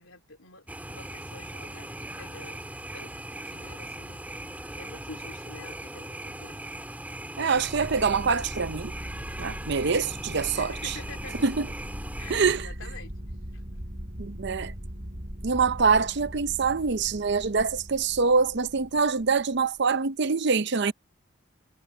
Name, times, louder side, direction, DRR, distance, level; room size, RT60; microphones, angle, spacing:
voice 1, 0.0-2.6 2.9-6.7 10.5-11.4 12.2-13.2 13.5-13.6, left 3 dB, 80° left, 3.2 m, -48 dB
sound 1, 0.7-12.6, right 1 dB, 10° right, 3.3 m, -39 dB
voice 2, 7.4-8.9 9.4-10.9 11.4-11.7 12.3-12.7 14.2-14.7 15.4-20.9, right 5 dB, 55° right, 0.7 m, -25 dB
sound 2, 7.5-19.8, equal, 40° right, 4.1 m, -40 dB
head